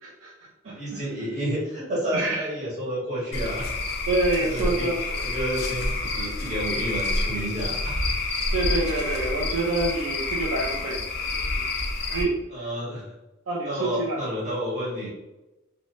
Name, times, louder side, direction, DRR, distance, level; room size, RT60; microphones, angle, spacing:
voice 1, 0.0-1.0 2.1-2.5 4.1-5.2 8.5-11.0 11.5-11.7 12.1-12.7 13.5-14.2, right 2 dB, 65° right, -2 dB, 0.5 m, -27 dB
voice 2, 0.6-3.8 4.5-4.9 5.2-8.0 11.3-11.4 12.5-13.1 13.6-15.1, equal, 35° right, -6 dB, 1.3 m, -30 dB
Cricket / Frog, 3.3-12.2, left 2 dB, 50° left, 0.6 m, -28 dB
3.4 x 2.4 x 2.5 m, 1.0 s
head